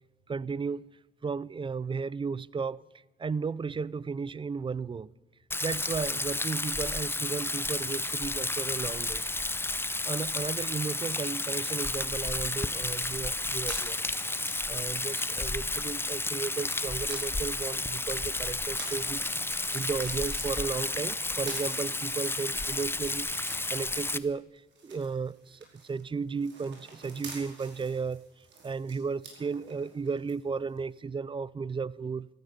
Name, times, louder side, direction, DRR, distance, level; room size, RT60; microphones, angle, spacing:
voice 1, 0.3-2.8 3.2-5.1 5.6-9.2 10.0-14.0 14.7-28.2 28.6-32.3, right 5 dB, 25° right, 0.5 m, -34 dB
Rain, 5.5-24.2, left 2 dB, 10° left, 0.7 m, -32 dB
sound 1, 13.5-24.3 24.6-30.3 30.8-30.9, right 4 dB, 65° right, 5.1 m, -49 dB
15.0 x 13.0 x 6.9 m
cardioid pair, 90°, 20 cm